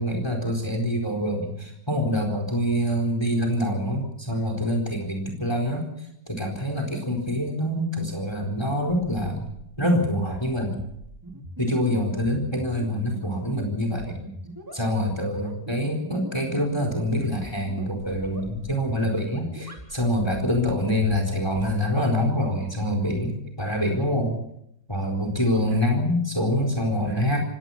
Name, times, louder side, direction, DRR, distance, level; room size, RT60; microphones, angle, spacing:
voice 1, 0.0-5.8 6.3-9.5 9.8-10.8 11.6-14.2 14.7-24.4 24.9-27.4, equal, 15° left, 3 dB, 4.2 m, -25 dB
sound 1, 8.4-21.7, equal, 10° right, 4.4 m, -41 dB
26.5 x 18.0 x 5.8 m, 0.76 s
omnidirectional pair, 1.8 m